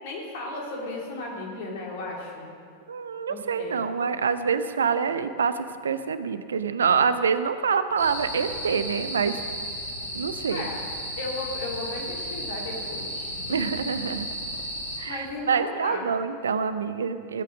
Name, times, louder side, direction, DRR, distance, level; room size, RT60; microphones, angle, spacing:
voice 1, 0.0-2.5 3.3-3.7 10.5-10.8 11.2-13.4 15.1-16.0, left 2 dB, 50° left, -1 dB, 2.9 m, -35 dB
voice 2, 2.9-5.5 5.8-9.4 10.1-10.7 13.5-14.3 15.0-17.4, right 6 dB, 70° right, 11 dB, 0.6 m, -26 dB
sound 1, 8.0-15.0, equal, 80° left, 3.8 m, -34 dB
15.5 x 8.4 x 6.3 m, 2.3 s
figure-of-eight pair, 90°, 0 cm